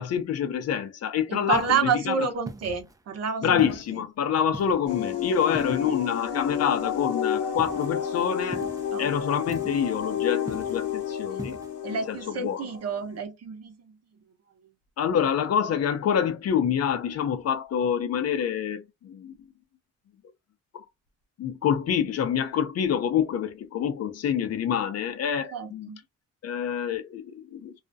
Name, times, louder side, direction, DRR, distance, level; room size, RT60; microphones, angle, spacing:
voice 1, 0.0-2.2 3.4-8.6 9.0-11.6 12.1-12.6 15.0-19.3 20.7-20.8 21.4-25.9 26.4-27.8, left 8 dB, 55° left, 0.6 m, -27 dB
voice 2, 1.3-3.7 3.9-4.1 8.9-9.1 11.8-14.0 25.5-26.0, right 6 dB, 55° right, 0.7 m, -29 dB
sound 1, 1.5-1.9 2.5-3.0 3.6-4.0 4.5-5.0 5.5-6.1 7.6-7.9 8.5-8.9 9.5-9.9 10.5-10.9 11.4-11.7, right 2 dB, 10° right, 0.4 m, -41 dB
sound 2, 4.9-13.2, left 8 dB, 80° left, 1.0 m, -31 dB
2.4 x 2.1 x 2.6 m
cardioid pair, 90°, 30 cm